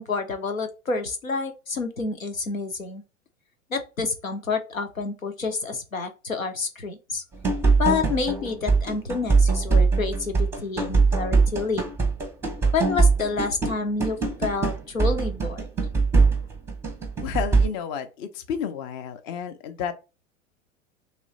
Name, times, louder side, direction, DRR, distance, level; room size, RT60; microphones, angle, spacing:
voice 1, 0.0-3.0 3.7-7.2 7.8-11.9 12.7-15.7, left 4 dB, 85° left, 0.8 m, -28 dB
sound 1, 7.3-17.7, right 4 dB, 5° right, 0.7 m, -22 dB
voice 2, 17.2-19.9, left 7 dB, 25° left, 0.4 m, -31 dB
3.1 x 3.0 x 3.8 m
figure-of-eight pair, 90°, 39 cm